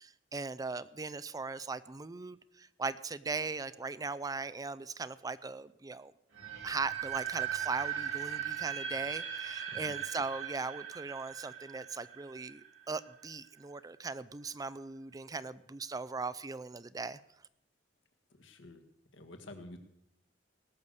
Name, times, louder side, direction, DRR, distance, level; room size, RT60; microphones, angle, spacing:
voice 1, 0.0-6.1 6.6-17.2, right 4 dB, 20° right, 16 dB, 0.4 m, -39 dB
sound 1, 6.3-13.2, right 9 dB, 85° right, 2.2 m, -39 dB
voice 2, 18.3-18.8 19.1-19.8, left 1 dB, 75° left, 6 dB, 1.9 m, -50 dB
18.5 x 6.8 x 8.2 m, 0.79 s
head